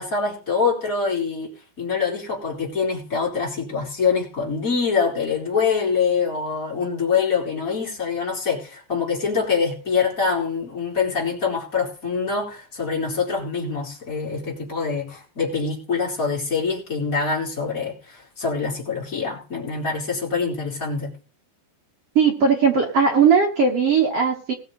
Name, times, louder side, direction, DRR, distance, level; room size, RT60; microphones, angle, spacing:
voice 1, 0.0-1.5 1.8-21.1, left 5 dB, 20° left, -3 dB, 4.3 m, -25 dB
voice 2, 22.1-24.5, right 6 dB, 65° right, 1 dB, 1.4 m, -18 dB
19.5 x 6.4 x 5.5 m, 0.38 s
omnidirectional pair, 4.9 m